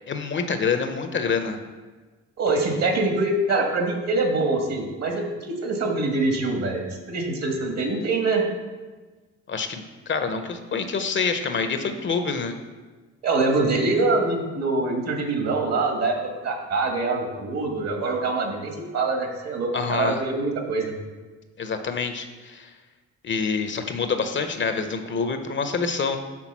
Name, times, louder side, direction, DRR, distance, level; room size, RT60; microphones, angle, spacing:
voice 1, 0.1-1.6 2.7-2.9 9.5-12.6 19.7-20.2 21.6-22.7 23.2-26.2, left 5 dB, 40° left, 7 dB, 0.6 m, -26 dB
voice 2, 2.4-8.4 13.2-20.9, right 3 dB, 60° right, 3 dB, 1.5 m, -24 dB
6.0 x 3.7 x 6.0 m, 1.3 s
cardioid pair, 90°, 30 cm